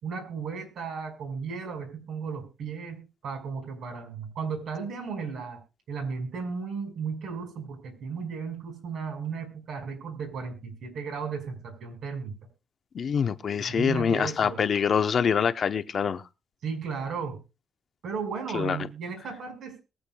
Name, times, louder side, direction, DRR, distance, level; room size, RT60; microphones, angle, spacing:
voice 1, 0.0-5.6 5.9-12.4 13.6-14.6 16.6-17.4 18.0-19.8, right 5 dB, 70° right, 5.2 m, -35 dB
voice 2, 12.9-16.2 18.5-18.8, left 7 dB, 50° left, 0.8 m, -25 dB
22.0 x 8.1 x 2.3 m
cardioid pair, 90°, 0 cm